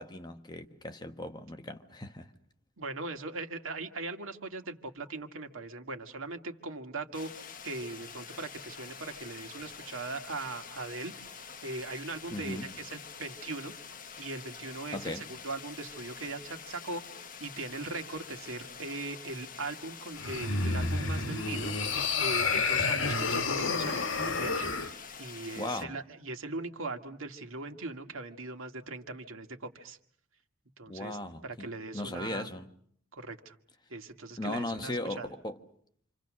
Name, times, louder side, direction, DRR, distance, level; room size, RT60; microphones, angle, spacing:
voice 1, 0.0-2.3 12.3-12.7 14.9-15.2 25.6-25.9 30.9-32.7 34.4-35.6, left 1 dB, 20° left, 1.1 m, -37 dB
voice 2, 2.8-7.3 7.6-13.7 14.2-30.0 30.8-31.2 31.4-32.5 33.1-33.6 33.9-35.3, right 3 dB, 80° right, 2.0 m, -40 dB
sound 1, 7.1-25.8, left 6 dB, 40° left, 1.2 m, -47 dB
sound 2, 20.1-24.9, left 4 dB, 70° left, 1.5 m, -30 dB
28.0 x 27.0 x 6.3 m
head